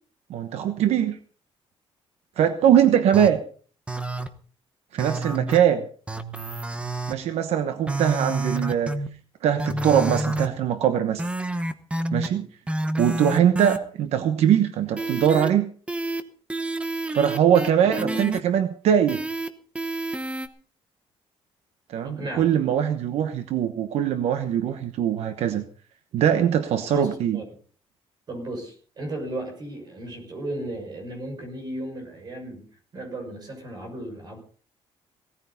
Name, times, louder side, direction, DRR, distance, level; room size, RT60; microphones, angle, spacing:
voice 1, 0.3-1.2 2.4-3.4 4.9-5.8 7.1-8.9 9.4-11.2 12.1-12.5 13.0-15.7 17.1-19.2 21.9-25.6 26.1-27.4, right 9 dB, 85° right, 9 dB, 1.1 m, -22 dB
sound 1, 3.1-3.3 3.9-4.3 5.0-5.6 6.1-7.1 7.9-9.1 9.6-10.5 11.2-12.3 12.7-13.8 15.0-15.5 15.9-16.2 16.5-18.4 19.1-19.5 19.8-20.5, right 2 dB, 10° right, 1.0 m, -28 dB
voice 2, 17.8-18.1 22.0-22.5 26.9-27.5 28.3-34.4, right 1 dB, 40° right, 3 dB, 6.0 m, -35 dB
18.0 x 14.0 x 4.1 m, 0.43 s
cardioid pair, 170°, 11 cm